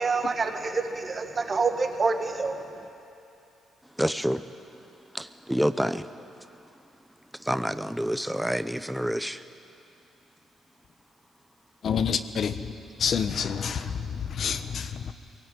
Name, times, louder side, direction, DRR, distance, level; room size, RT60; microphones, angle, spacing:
voice 1, 0.0-2.6, right 4 dB, 35° right, 2.0 m, -27 dB
voice 2, 4.0-4.4 5.1-6.1 7.5-9.4, equal, ahead, 0.7 m, -27 dB
voice 3, 11.8-12.6 13.0-13.9 14.3-15.1, left 7 dB, 60° left, 1.1 m, -27 dB
22.5 x 17.5 x 9.2 m
cardioid pair, 90°, 0 cm